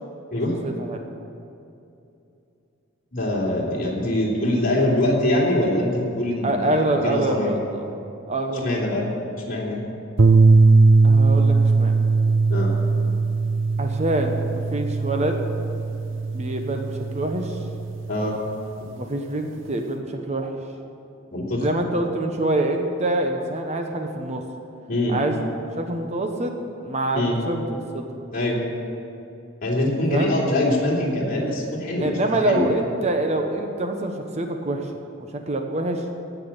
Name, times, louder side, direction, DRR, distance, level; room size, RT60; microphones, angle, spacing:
voice 1, 0.6-1.0 6.4-7.9 8.3-8.8 11.0-11.9 13.8-15.4 16.3-17.6 19.0-20.6 21.6-24.4 25.1-25.5 25.8-26.5 26.8-28.0 30.1-30.3 32.0-34.9 35.5-36.0, right 1 dB, 35° right, 4 dB, 1.0 m, -25 dB
voice 2, 3.1-6.7 7.0-7.5 8.6-9.1 9.5-9.8 12.5-12.7 18.1-18.4 21.3-21.7 24.9-25.1 27.1-27.4 28.3-28.6 29.6-32.1 32.4-32.7, left 1 dB, 45° left, -4 dB, 3.3 m, -23 dB
sound 1, 10.2-18.6, right 3 dB, 65° right, 0.7 m, -19 dB
16.0 x 6.0 x 10.0 m, 2.7 s
head